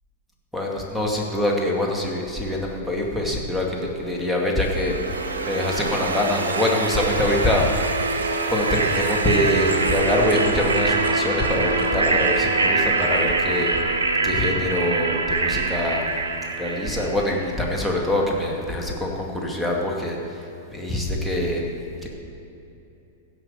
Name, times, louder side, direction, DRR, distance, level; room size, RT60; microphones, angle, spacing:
voice 1, 0.5-4.9 5.4-7.7 8.5-13.8 14.2-16.0 16.6-20.2 20.7-21.6 22.0-22.1, left 1 dB, ahead, -3 dB, 2.3 m, -24 dB
sound 1, 4.7-17.6, right 3 dB, 75° right, 1.2 m, -24 dB
16.0 x 6.0 x 6.9 m, 2.9 s
hypercardioid pair, 100°, 0 cm